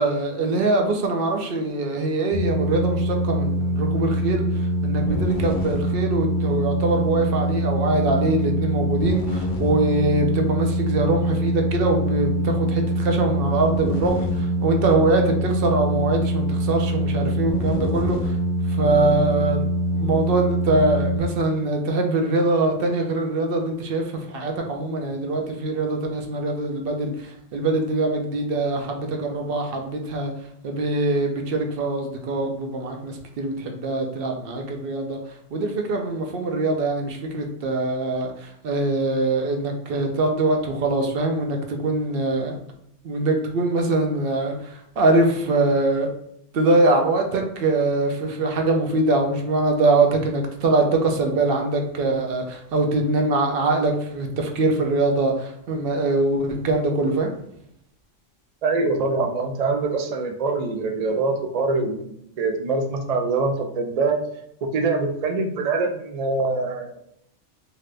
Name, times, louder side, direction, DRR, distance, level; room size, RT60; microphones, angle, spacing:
voice 1, 0.0-4.4 4.8-18.3 18.7-19.6 19.9-30.3 30.6-35.2 35.5-42.6 43.0-46.1 46.5-57.3, right 2 dB, 60° right, 3 dB, 0.7 m, -23 dB
sound 1, 2.3-21.2, right 1 dB, 60° left, 0.5 m, -24 dB
voice 2, 58.6-64.3 64.6-67.0, right 3 dB, 90° right, 4 dB, 0.3 m, -24 dB
2.8 x 2.5 x 3.2 m, 0.74 s
omnidirectional pair, 1.3 m